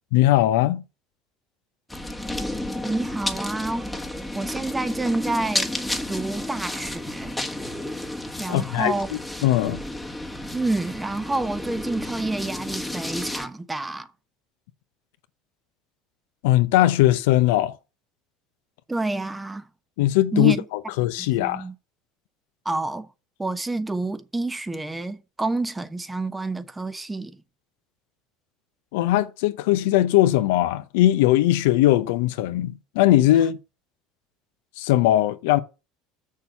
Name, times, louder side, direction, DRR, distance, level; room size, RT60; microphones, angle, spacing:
voice 1, 0.1-0.8 8.5-9.8 16.4-17.7 20.0-21.6 28.9-33.6 34.8-35.6, left 14 dB, 75° left, 0.7 m, -20 dB
sound 1, 1.9-13.5, left 1 dB, 5° left, 1.3 m, -32 dB
voice 2, 2.8-3.9 4.3-5.8 6.1-7.3 8.4-9.1 10.5-14.1 18.9-19.6 20.3-20.6 21.2-21.7 22.6-23.1 23.4-27.4, right 2 dB, 15° right, 1.0 m, -28 dB
6.9 x 6.5 x 5.6 m
hypercardioid pair, 80°, 0 cm